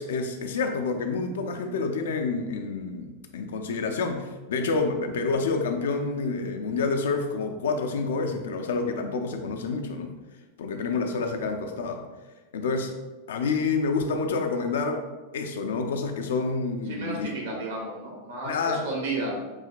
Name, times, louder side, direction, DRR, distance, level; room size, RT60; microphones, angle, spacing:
voice 1, 0.0-10.1 10.6-12.0 12.5-12.9 13.3-17.3 18.5-18.8, left 4 dB, 60° left, 5 dB, 0.5 m, -28 dB
voice 2, 16.9-19.3, right 2 dB, 65° right, -2 dB, 1.5 m, -32 dB
7.3 x 2.8 x 2.4 m, 1.2 s
figure-of-eight pair, 90°, 0 cm